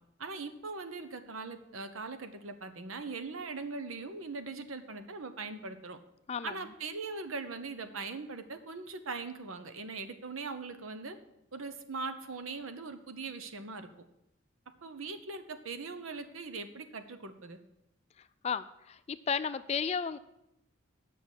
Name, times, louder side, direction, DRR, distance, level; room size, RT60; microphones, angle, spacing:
voice 1, 0.2-6.0 6.4-11.2 11.5-13.9 14.8-17.6, right 4 dB, 90° right, 9 dB, 0.9 m, -40 dB
voice 2, 19.1-20.2, left 6 dB, 30° left, 13 dB, 0.3 m, -32 dB
8.4 x 6.0 x 8.1 m, 0.83 s
head